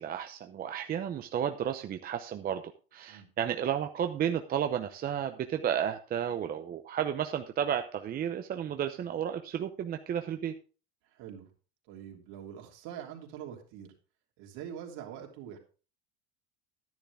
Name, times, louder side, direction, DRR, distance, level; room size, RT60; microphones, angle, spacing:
voice 1, 0.0-10.6, right 9 dB, 30° right, 7 dB, 0.7 m, -32 dB
voice 2, 11.1-11.5 11.9-13.9 14.4-15.6, right 9 dB, 65° right, 1 dB, 3.2 m, -44 dB
10.5 x 10.5 x 3.5 m, 0.36 s
supercardioid pair, 120°, 32 cm